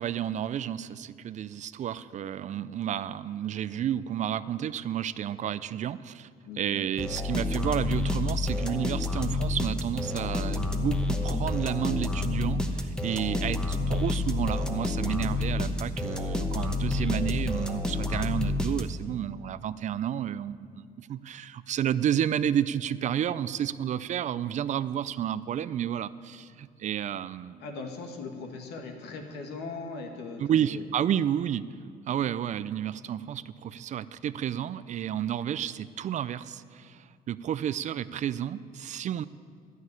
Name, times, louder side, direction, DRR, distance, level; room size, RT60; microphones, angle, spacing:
voice 1, 0.0-6.3 6.6-27.6 30.4-31.7 32.1-39.2, right 10 dB, 45° right, 15 dB, 0.4 m, -31 dB
voice 2, 6.5-6.8 27.6-30.8, left 3 dB, 80° left, 3 dB, 1.8 m, -39 dB
sound 1, 7.0-19.2, left 2 dB, 5° left, 1.0 m, -29 dB
12.0 x 6.4 x 9.6 m, 2.2 s
cardioid pair, 110°, 17 cm